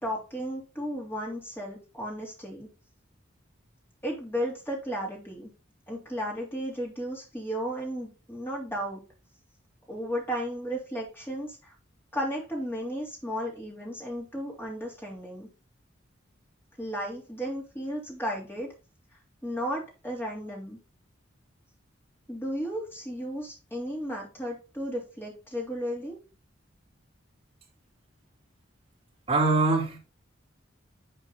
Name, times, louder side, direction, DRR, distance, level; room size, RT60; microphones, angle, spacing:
voice 1, 0.0-2.7 4.0-5.5 5.9-9.0 9.9-11.7 12.1-15.5 16.8-18.7 19.4-20.8 22.3-26.2, equal, 10° left, 3.1 m, -34 dB
voice 2, 29.3-30.0, right 3 dB, 30° right, 4.0 m, -23 dB
10.0 x 4.5 x 3.9 m
head